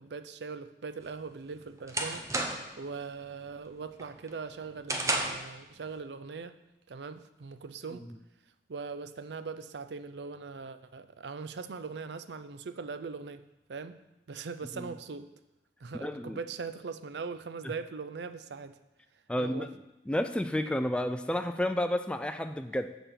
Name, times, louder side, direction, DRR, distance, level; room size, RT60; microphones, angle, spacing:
voice 1, 0.0-6.6 6.9-8.1 8.7-13.4 13.7-14.0 14.3-15.3 15.8-18.8 19.4-19.7, right 5 dB, 80° right, 11 dB, 0.5 m, -41 dB
sound 1, 1.1-2.8 3.2-3.6 4.0-5.5, right 2 dB, 15° right, 0.7 m, -33 dB
voice 2, 16.0-16.4 19.3-19.7 20.1-22.9, left 1 dB, 5° left, 8 dB, 0.3 m, -31 dB
6.9 x 6.8 x 5.8 m, 0.94 s
head